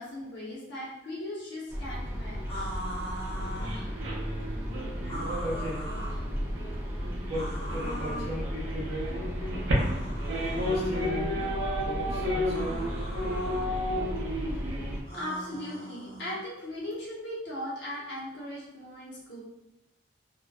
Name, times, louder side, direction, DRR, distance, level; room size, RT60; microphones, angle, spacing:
voice 1, 0.0-2.8 12.9-13.2 15.1-19.4, left 1 dB, 65° left, -7 dB, 0.7 m, -38 dB
sound 1, 1.7-15.0, equal, 10° right, 0.3 m, -35 dB
sound 2, 2.5-3.9 5.0-6.2 7.3-8.3 9.7-11.1 12.5-13.7 15.1-16.4, equal, 30° left, 0.7 m, -40 dB
sound 3, 3.3-15.0, equal, 80° right, 0.5 m, -33 dB
voice 2, 5.4-5.8 7.2-8.9 10.5-11.4 11.8-12.8, left 1 dB, 30° right, -9 dB, 0.8 m, -37 dB
2.5 x 2.1 x 2.2 m, 0.92 s
head